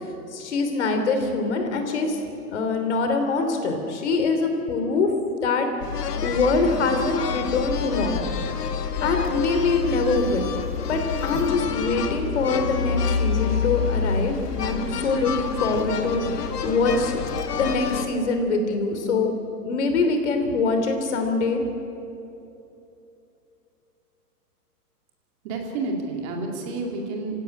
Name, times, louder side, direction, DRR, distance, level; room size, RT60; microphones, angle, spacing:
voice 1, 0.3-2.2 2.5-5.1 5.4-5.7 6.2-8.3 9.0-10.5 10.9-17.3 17.5-19.3 19.6-21.6, left 3 dB, 45° left, 5 dB, 3.2 m, -24 dB
sound 1, 5.8-18.1, left 6 dB, 85° left, 2.2 m, -28 dB
voice 2, 25.4-27.4, right 3 dB, 20° right, 1 dB, 2.4 m, -30 dB
26.5 x 17.0 x 9.9 m, 2.9 s
hypercardioid pair, 180°, 47 cm